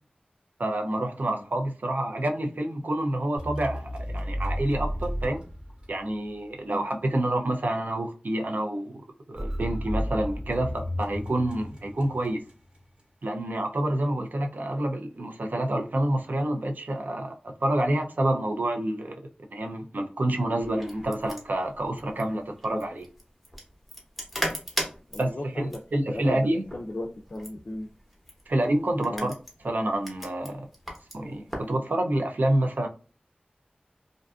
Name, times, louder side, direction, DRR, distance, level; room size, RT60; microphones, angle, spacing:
voice 1, 0.6-5.4 5.9-9.0 9.3-12.4 13.2-19.2 19.5-23.1 25.2-26.6 28.5-29.3 29.6-30.7 31.1-32.9, right 1 dB, 70° right, 0.4 m, -28 dB
sound 1, 3.4-6.4 9.4-12.8, equal, 35° right, 1.0 m, -33 dB
sound 2, 20.6-31.7, equal, ahead, 0.8 m, -38 dB
voice 2, 25.1-25.8 26.1-27.9 29.1-29.3, left 1 dB, 55° left, 0.3 m, -36 dB
2.5 x 2.4 x 2.3 m
wide cardioid pair, 55°, 3 cm